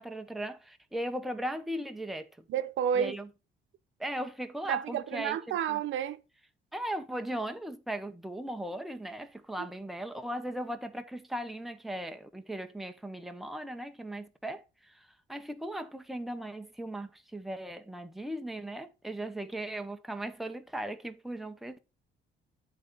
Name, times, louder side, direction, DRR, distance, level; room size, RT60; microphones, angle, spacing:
voice 1, 0.0-2.3 2.9-3.3 4.0-5.8 6.7-21.8, right 1 dB, ahead, 0.9 m, -38 dB
voice 2, 2.5-3.1 4.7-6.2, right 9 dB, 75° right, 0.8 m, -30 dB
9.6 x 4.0 x 5.2 m
cardioid pair, 90°, 20 cm